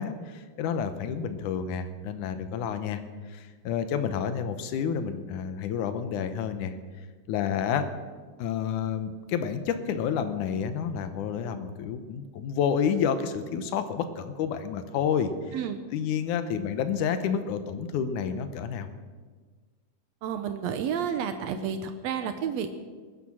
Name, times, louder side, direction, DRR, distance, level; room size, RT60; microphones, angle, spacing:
voice 1, 0.0-3.0 3.3-6.8 7.3-7.9 8.4-15.6 15.9-18.9, left 7 dB, 70° left, 10 dB, 2.1 m, -29 dB
voice 2, 20.2-22.7, right 7 dB, 90° right, 8 dB, 1.5 m, -30 dB
19.5 x 10.5 x 6.1 m, 1.5 s
omnidirectional pair, 4.2 m